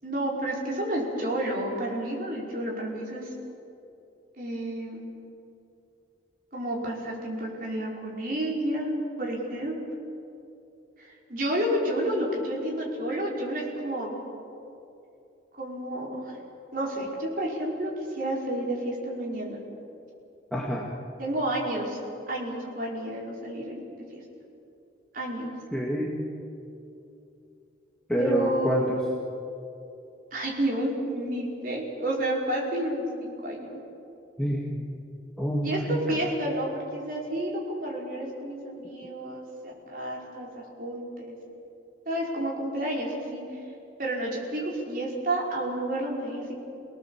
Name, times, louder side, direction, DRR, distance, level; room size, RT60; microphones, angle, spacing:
voice 1, 0.0-3.3 4.4-5.1 6.5-8.9 9.2-9.8 11.0-14.2 15.5-16.3 16.7-19.6 21.2-22.0 22.3-23.8 24.1-24.2 25.1-25.5 28.2-28.9 30.3-33.8 35.6-41.4 42.0-43.4 44.0-46.5, right 1 dB, 45° right, -3 dB, 5.1 m, -30 dB
voice 2, 20.5-20.9 25.7-26.2 28.1-29.0 34.4-34.9 35.4-36.3, equal, 5° left, -4 dB, 2.0 m, -28 dB
29.5 x 18.5 x 7.4 m, 2.8 s
head